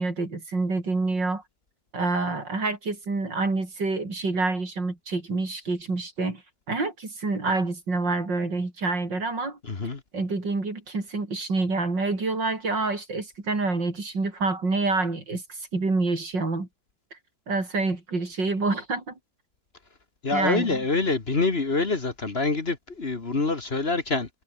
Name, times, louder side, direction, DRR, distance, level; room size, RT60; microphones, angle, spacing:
voice 1, 0.0-1.4 1.9-6.4 6.7-9.6 10.1-16.7 17.5-19.1 20.3-20.8, right 3 dB, 90° right, 5.7 m, -27 dB
voice 2, 9.6-10.0 20.2-24.3, left 3 dB, 35° left, 2.0 m, -26 dB
omnidirectional pair, 1.9 m